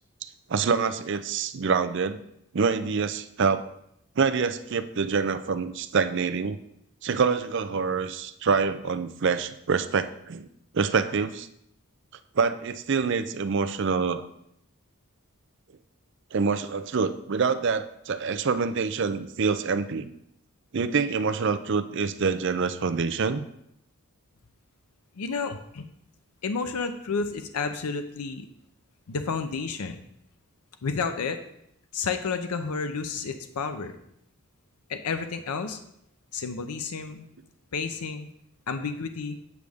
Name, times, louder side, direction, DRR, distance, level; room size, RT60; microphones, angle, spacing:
voice 1, 0.5-2.2 2.5-3.6 4.2-6.6 7.0-10.5 10.7-11.5 12.4-14.3 16.3-20.1 20.7-23.4, right 5 dB, 55° right, 10 dB, 0.5 m, -26 dB
voice 2, 25.2-25.9 26.4-28.5 29.1-30.0 30.8-31.4 31.9-33.9 34.9-35.8 36.3-37.2 37.7-38.3 38.7-39.4, left 5 dB, 90° left, 8 dB, 0.6 m, -31 dB
8.3 x 6.3 x 3.5 m, 0.75 s
head